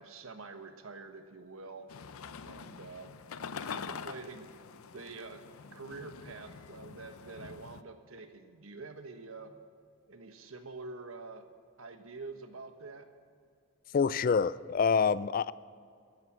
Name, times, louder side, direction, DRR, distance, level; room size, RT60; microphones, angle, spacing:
voice 1, 0.0-1.9 2.4-3.1 3.6-4.5 4.9-5.4 5.7-9.5 10.1-11.5 11.8-13.1, right 3 dB, 80° right, 7 dB, 1.3 m, -46 dB
sound 1, 1.9-7.8, left 6 dB, 85° left, 0.6 m, -45 dB
voice 2, 13.9-15.5, left 5 dB, 40° left, 18 dB, 0.3 m, -26 dB
14.5 x 10.5 x 7.4 m, 2.3 s
head